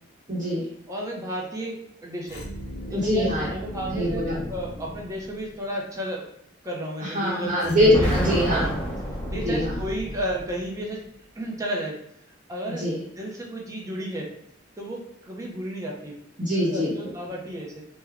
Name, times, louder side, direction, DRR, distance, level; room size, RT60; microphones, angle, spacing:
voice 1, 0.3-0.6 2.9-3.5 3.9-4.4 7.0-8.6 9.4-9.8 12.8-13.0 16.4-16.9, equal, 40° right, -8 dB, 0.9 m, -23 dB
voice 2, 0.9-1.8 2.0-2.4 2.9-6.2 6.6-7.6 8.0-8.8 9.3-11.0 11.4-12.0 12.5-12.8 13.2-14.3 14.8-16.1 16.7-17.8, right 1 dB, 15° right, -2 dB, 0.6 m, -33 dB
sound 1, 2.3-5.6 7.6-10.9, equal, 50° left, 0.5 m, -35 dB
Explosion, 7.9-10.0, equal, 5° left, 0.9 m, -29 dB
3.4 x 2.1 x 3.4 m, 0.76 s
head